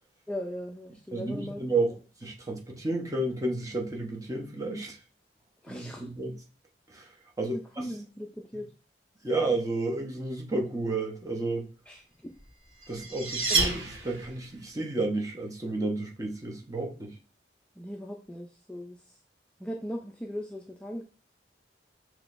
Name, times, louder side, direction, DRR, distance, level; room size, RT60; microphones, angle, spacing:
voice 1, 0.3-1.6 5.6-6.1 7.4-8.7 11.9-12.0 17.8-19.1 19.6-21.0, equal, 5° left, 0.4 m, -38 dB
voice 2, 1.1-1.9 2.2-5.0 5.7-6.4 6.9-7.1 7.4-7.6 9.2-11.7 12.9-17.2, right 2 dB, 20° right, 0.9 m, -31 dB
sound 1, 12.5-14.5, right 3 dB, 75° right, 1.5 m, -29 dB
6.2 x 3.0 x 2.5 m
head